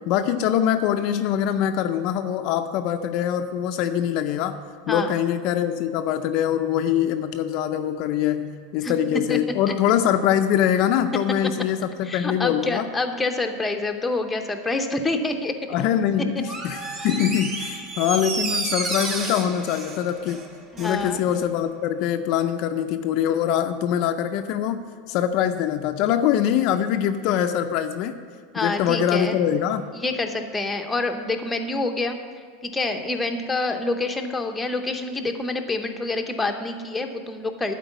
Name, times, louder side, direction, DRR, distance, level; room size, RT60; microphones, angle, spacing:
voice 1, 0.0-4.6 4.9-12.9 15.7-20.4 20.8-28.1 28.6-29.8, left 9 dB, 50° left, 7 dB, 0.4 m, -23 dB
voice 2, 12.0-15.5 20.7-21.2 28.5-29.4 29.9-32.2 32.6-37.7, left 2 dB, 10° left, 4 dB, 0.7 m, -27 dB
Door, 16.4-21.0 21.3-21.4, right 3 dB, 25° right, 1.3 m, -31 dB
12.0 x 4.5 x 8.1 m, 2.2 s
supercardioid pair, 150°, 0 cm